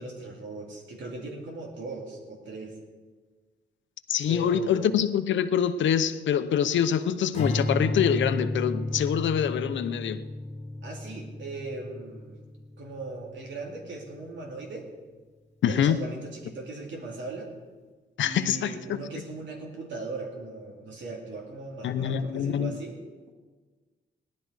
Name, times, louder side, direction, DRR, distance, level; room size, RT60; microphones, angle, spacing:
voice 1, 0.0-2.8 4.3-4.9 10.8-12.4 12.8-14.9 15.7-17.5 18.2-23.0, right 3 dB, 85° right, 2.5 m, -38 dB
voice 2, 4.1-10.2 15.6-16.0 18.2-19.0 21.8-22.8, left 9 dB, 90° left, 0.7 m, -25 dB
Strum, 7.3-13.7, left 1 dB, 35° left, 1.8 m, -32 dB
17.0 x 11.5 x 4.8 m
wide cardioid pair, 130°, 19 cm